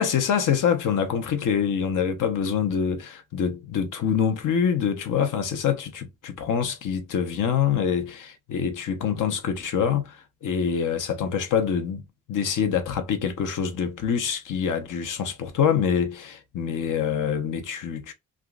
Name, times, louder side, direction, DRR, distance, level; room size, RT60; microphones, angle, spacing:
voice 1, 0.0-12.0 12.3-18.1, left 7 dB, 60° left, 0.8 m, -25 dB
3.5 x 2.5 x 2.3 m
supercardioid pair, 60°, 35 cm